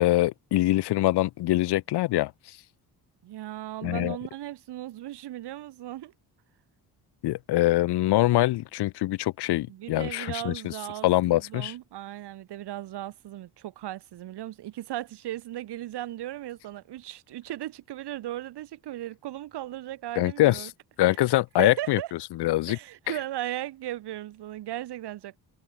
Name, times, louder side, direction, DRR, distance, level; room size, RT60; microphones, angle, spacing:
voice 1, 0.0-2.3 3.8-4.2 7.2-10.7 11.0-11.7 20.2-20.7 21.0-22.0 22.4-22.8, left 16 dB, 80° left, 1.0 m, -24 dB
voice 2, 3.2-6.1 9.7-20.7 21.6-22.1 22.7-25.4, right 14 dB, 80° right, 5.2 m, -37 dB
cardioid pair, 90°, 39 cm